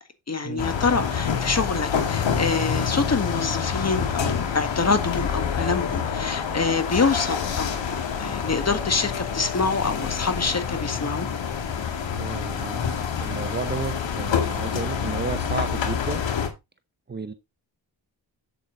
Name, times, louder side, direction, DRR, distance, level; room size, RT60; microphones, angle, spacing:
voice 1, 0.3-11.3, left 4 dB, 35° left, 1.8 m, -26 dB
sound 1, 0.6-16.5, left 7 dB, 70° left, 2.2 m, -27 dB
voice 2, 12.2-12.9 13.2-16.2 17.1-17.3, right 4 dB, 20° right, 0.7 m, -32 dB
7.9 x 7.9 x 3.9 m
cardioid pair, 85°, 47 cm